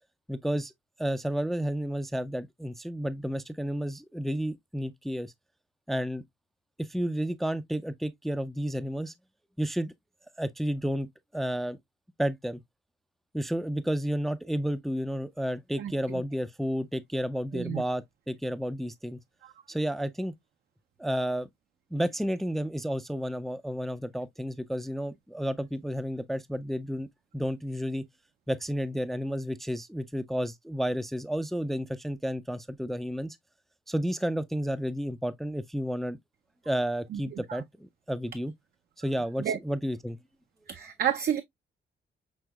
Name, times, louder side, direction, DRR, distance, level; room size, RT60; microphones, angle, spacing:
voice 1, 0.3-0.7 1.0-5.3 5.9-6.2 6.8-9.1 9.6-9.9 10.4-11.8 12.2-12.6 13.3-19.2 19.7-20.3 21.0-21.5 21.9-27.1 27.3-28.0 28.5-33.4 33.9-36.2 36.7-38.5 39.0-40.2, equal, ahead, 0.4 m, -31 dB
voice 2, 15.8-16.2 17.5-17.8 19.4-19.5 37.1-37.2 37.5-37.6 39.4-39.6 40.7-41.4, right 9 dB, 50° right, 0.5 m, -30 dB
6.2 x 2.9 x 2.2 m
cardioid pair, 90°, 20 cm